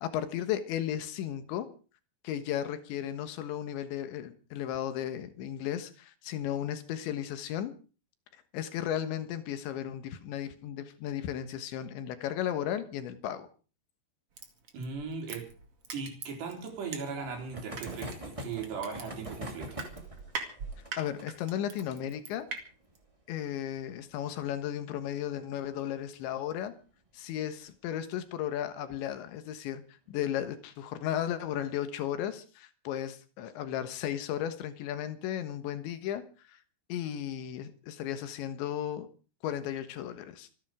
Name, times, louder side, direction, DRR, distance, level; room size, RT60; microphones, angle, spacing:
voice 1, 0.0-1.7 2.2-7.7 8.5-13.5 21.0-22.5 23.3-26.7 27.1-29.8 30.1-36.2 36.9-39.1 39.4-40.5, left 10 dB, 80° left, 10 dB, 3.7 m, -35 dB
Crushing, 14.4-17.4 17.7-22.6 23.0-23.1, right 5 dB, 40° right, 2.7 m, -41 dB
voice 2, 14.7-15.5 15.9-19.8, right 5 dB, 70° right, 3 dB, 5.9 m, -38 dB
sound 1, 16.5-25.7 26.0-26.1 26.3-26.4 26.7-26.8 28.2-28.5 29.1-29.5, equal, 15° right, 1.1 m, -46 dB
26.0 x 10.5 x 5.0 m, 0.38 s
omnidirectional pair, 5.1 m